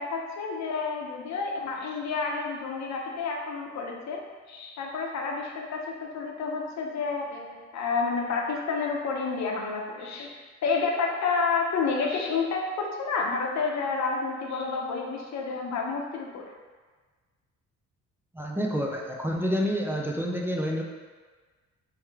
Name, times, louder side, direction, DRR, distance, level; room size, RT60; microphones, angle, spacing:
voice 1, 0.0-4.2 4.5-10.3 10.6-16.4, left 4 dB, 65° left, 0 dB, 0.8 m, -30 dB
voice 2, 18.3-20.8, equal, 10° right, -1 dB, 0.4 m, -28 dB
3.1 x 3.1 x 3.5 m, 1.4 s
cardioid pair, 90°, 30 cm